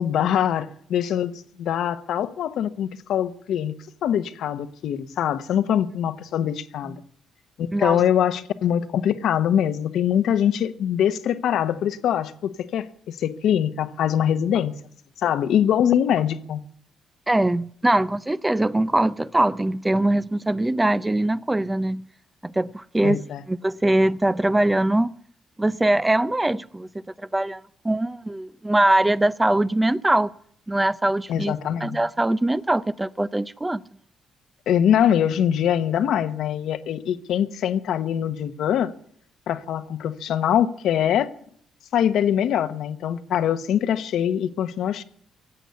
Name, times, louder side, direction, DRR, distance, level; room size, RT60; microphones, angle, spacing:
voice 1, 0.0-3.8 4.0-7.0 7.6-14.7 15.2-16.6 23.0-23.4 31.3-32.0 34.7-38.9 39.5-41.3 41.9-45.0, left 9 dB, 75° left, 1.1 m, -23 dB
voice 2, 7.7-8.0 17.3-22.0 22.4-23.2 23.5-25.1 25.6-26.9 27.3-30.3 30.7-31.5 31.8-33.8, right 1 dB, 15° right, 0.5 m, -22 dB
17.0 x 8.3 x 8.2 m
cardioid pair, 90°, 0 cm